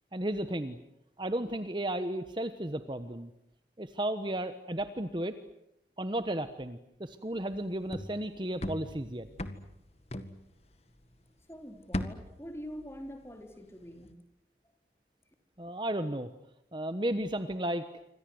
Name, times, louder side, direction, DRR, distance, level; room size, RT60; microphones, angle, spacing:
voice 1, 0.1-0.8 1.2-3.3 3.8-5.4 6.0-9.3 15.6-16.3 16.7-17.9, right 1 dB, 25° right, 10 dB, 1.2 m, -34 dB
sound 1, 7.5-11.2 11.5-13.5 13.8-14.1, left 1 dB, 35° left, 1.9 m, -40 dB
voice 2, 11.5-14.2, equal, 15° left, 5 dB, 4.0 m, -45 dB
28.0 x 25.0 x 7.9 m, 0.81 s
head